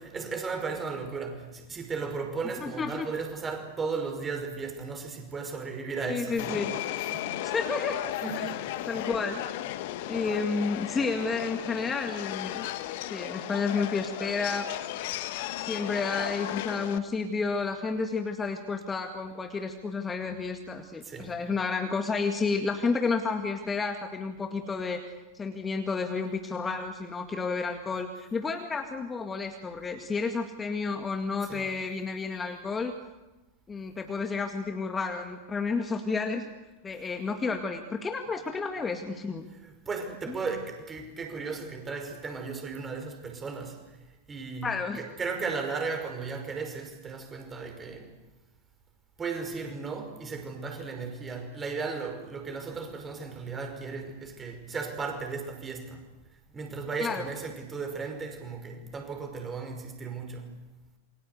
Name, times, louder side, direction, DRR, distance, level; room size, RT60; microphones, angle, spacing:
voice 1, 0.0-6.6 7.0-7.3 8.2-8.7 21.0-21.3 31.5-31.7 39.6-43.8 44.3-48.1 49.2-56.0 56.5-60.5, right 4 dB, 20° right, 5 dB, 5.5 m, -35 dB
voice 2, 2.6-3.1 6.1-6.7 7.4-8.0 8.4-8.5 8.9-9.4 10.1-12.7 13.1-14.7 15.6-25.0 25.3-32.9 33.7-36.5 36.8-39.4 40.3-40.4 44.6-45.0 57.0-57.3, left 4 dB, 15° left, 6 dB, 2.0 m, -31 dB
Subway metro underground, 6.4-17.0, left 14 dB, 50° left, 1.6 m, -35 dB
28.5 x 24.0 x 8.3 m, 1.1 s
figure-of-eight pair, 90°, 0 cm